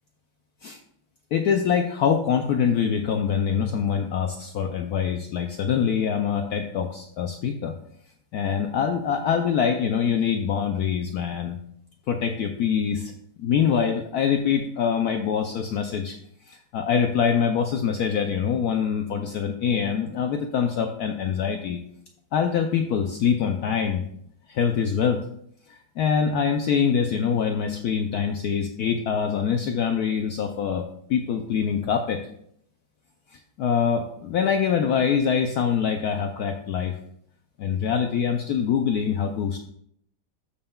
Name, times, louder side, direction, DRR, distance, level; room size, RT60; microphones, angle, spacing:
voice 1, 1.3-7.7 8.3-11.6 12.1-13.1 13.4-16.1 16.5-21.8 22.3-24.0 24.5-25.3 25.7-30.8 31.1-32.2 33.6-37.0 37.6-39.6, left 7 dB, 80° left, 5 dB, 0.8 m, -24 dB
13.5 x 5.5 x 2.3 m, 0.69 s
omnidirectional pair, 2.2 m